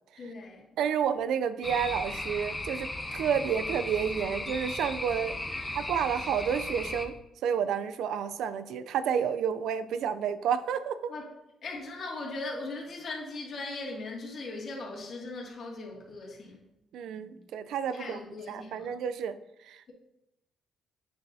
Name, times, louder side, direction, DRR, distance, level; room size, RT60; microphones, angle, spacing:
voice 1, 0.2-0.7 5.5-5.8 11.1-11.3 11.6-16.7 17.9-19.0, left 2 dB, 55° left, -2 dB, 2.3 m, -39 dB
voice 2, 0.8-5.4 5.7-11.1 16.9-18.2 18.5-19.4 19.7-19.9, right 8 dB, 80° right, 13 dB, 0.4 m, -30 dB
sound 1, 1.6-7.1, left 2 dB, 15° left, 1.0 m, -36 dB
8.8 x 6.9 x 2.7 m, 0.90 s
cardioid pair, 90°, 0 cm